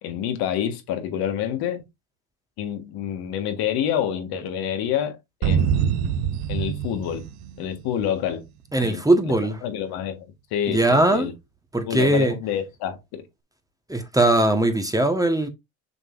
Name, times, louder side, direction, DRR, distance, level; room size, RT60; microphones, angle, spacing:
voice 1, 0.0-1.8 2.6-6.2 6.5-7.2 7.6-8.4 8.8-9.3 9.6-11.3 11.9-13.2, left 9 dB, 60° left, 1.7 m, -28 dB
sound 1, 5.4-8.2, right 8 dB, 60° right, 1.1 m, -25 dB
voice 2, 8.7-9.6 10.7-11.3 11.7-12.4 13.9-15.5, right 1 dB, 10° right, 1.3 m, -20 dB
7.0 x 5.4 x 2.6 m
hypercardioid pair, 80°, 42 cm